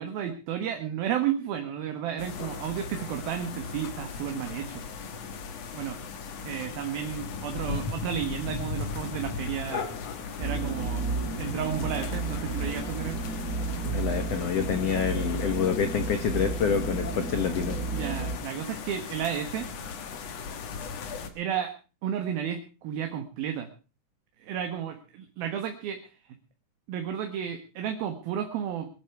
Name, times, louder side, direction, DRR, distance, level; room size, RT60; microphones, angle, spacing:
voice 1, 0.0-4.8 5.7-6.0 6.4-9.8 10.4-11.0 11.4-13.2 17.9-19.7 21.4-21.7 22.0-23.7 24.4-26.0 26.9-28.9, right 9 dB, 70° right, 5 dB, 3.1 m, -32 dB
sound 1, 2.2-21.3, left 5 dB, 55° left, 2.0 m, -38 dB
sound 2, 10.4-18.4, right 3 dB, 35° right, 1.4 m, -32 dB
voice 2, 13.8-17.8, left 7 dB, 85° left, 9 dB, 1.3 m, -27 dB
22.5 x 11.0 x 4.6 m, 0.35 s
omnidirectional pair, 4.7 m